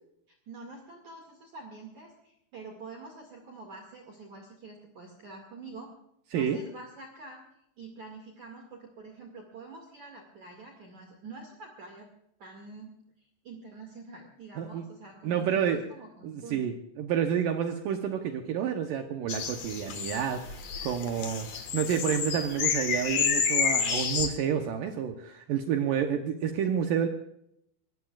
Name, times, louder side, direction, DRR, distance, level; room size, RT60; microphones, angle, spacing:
voice 1, 0.5-5.9 6.3-7.4 7.8-12.1 12.4-12.9 13.4-16.7, right 3 dB, 50° right, 1 dB, 3.0 m, -46 dB
voice 2, 15.2-15.9 16.2-27.1, right 8 dB, 80° right, 5 dB, 1.9 m, -29 dB
sound 1, 19.3-24.3, left 6 dB, 55° left, 2.2 m, -29 dB
24.5 x 18.5 x 2.5 m, 0.75 s
omnidirectional pair, 5.4 m